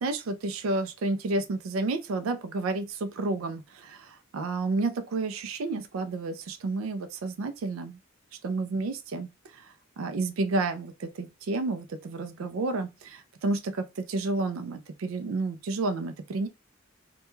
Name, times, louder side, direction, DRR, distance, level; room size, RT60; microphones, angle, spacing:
voice 1, 0.0-8.0 8.4-16.5, right 3 dB, 80° right, 0.4 m, -31 dB
2.2 x 2.2 x 3.0 m
head